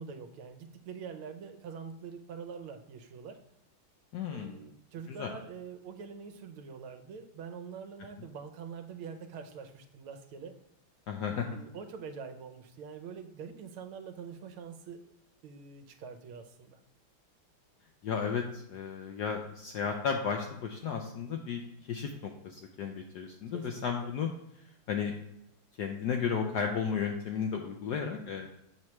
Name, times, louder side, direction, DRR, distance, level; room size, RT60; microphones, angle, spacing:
voice 1, 0.0-3.4 4.3-10.6 11.3-15.0 15.4-16.8 23.5-24.1, right 6 dB, 80° right, 6 dB, 1.6 m, -45 dB
voice 2, 4.1-4.6 5.2-5.3 11.1-11.5 18.0-21.6 21.9-24.3 24.9-25.1 25.8-28.5, left 6 dB, 75° left, 3 dB, 0.9 m, -33 dB
7.3 x 3.2 x 5.8 m, 0.80 s
omnidirectional pair, 2.3 m